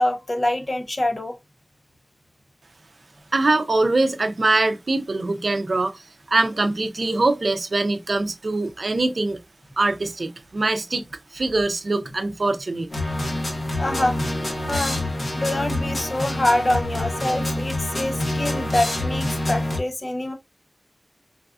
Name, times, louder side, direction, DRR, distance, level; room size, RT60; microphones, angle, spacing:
voice 1, 0.0-1.4 13.8-14.2 14.5-15.0 15.4-20.3, left 1 dB, 50° left, 0.6 m, -25 dB
voice 2, 3.3-9.4 9.8-11.1 11.3-12.9, right 2 dB, 75° right, 0.4 m, -23 dB
sound 1, 12.9-19.8, left 1 dB, 70° left, 1.0 m, -26 dB
4.0 x 2.3 x 2.3 m
cardioid pair, 40°, 0 cm